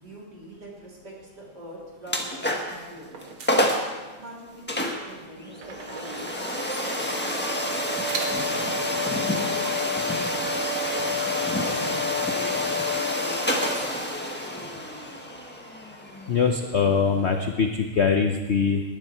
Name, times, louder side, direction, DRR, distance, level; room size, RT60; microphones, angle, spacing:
voice 1, 0.0-3.3 4.2-6.6 7.1-7.8 8.1-11.1 11.5-14.0, right 1 dB, 55° right, -4 dB, 4.1 m, -44 dB
sound 1, 2.1-2.8 3.2-3.3 3.5-3.9 4.7-17.4, left 1 dB, 5° left, 1.0 m, -28 dB
sound 2, 3.0-4.6 5.6-8.7, right 4 dB, 90° right, 2.3 m, -40 dB
voice 2, 16.3-18.8, left 6 dB, 75° left, 5 dB, 0.6 m, -22 dB
19.5 x 10.0 x 4.5 m, 1.3 s
omnidirectional pair, 2.2 m